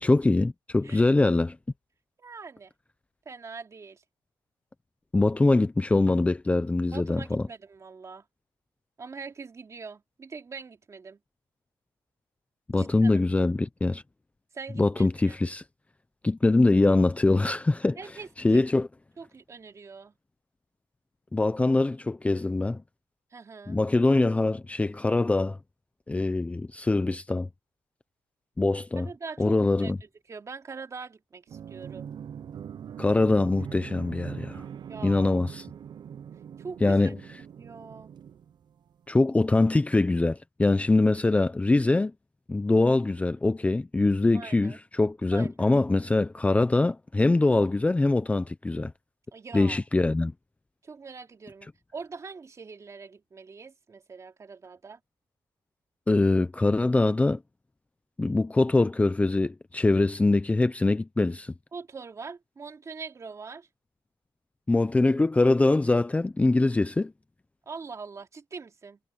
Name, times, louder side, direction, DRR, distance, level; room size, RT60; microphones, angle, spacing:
voice 1, 0.0-1.6 5.1-7.4 12.7-14.0 14.8-15.6 16.2-18.0 18.4-18.9 21.3-22.8 23.7-25.6 26.1-27.5 28.6-29.1 29.4-30.0 33.0-34.6 35.0-35.6 36.8-37.2 39.1-42.1 42.5-48.9 49.5-50.3 56.1-57.4 58.2-61.5 64.7-67.1, left 2 dB, 15° left, 0.7 m, -23 dB
voice 2, 2.2-2.7 3.2-4.0 6.9-8.2 9.0-11.2 12.8-13.1 14.5-15.4 18.0-18.6 19.2-20.1 23.3-23.8 29.0-29.9 30.3-32.1 34.9-35.3 36.6-37.1 37.6-38.1 44.3-44.8 45.3-45.7 49.3-49.8 50.8-55.0 61.7-63.7 67.7-69.0, right 5 dB, 35° right, 2.8 m, -42 dB
sound 1, 31.5-39.0, right 8 dB, 55° right, 0.8 m, -42 dB
cardioid pair, 105°, 9 cm